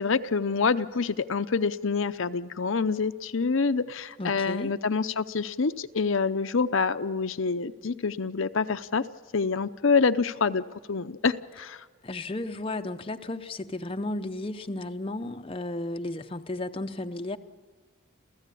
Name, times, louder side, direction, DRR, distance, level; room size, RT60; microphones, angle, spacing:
voice 1, 0.0-9.0 9.3-11.9, left 4 dB, 65° left, 10 dB, 0.7 m, -26 dB
voice 2, 4.2-4.8 12.0-17.4, left 2 dB, 25° left, 7 dB, 0.6 m, -34 dB
28.5 x 15.5 x 8.4 m, 1.5 s
head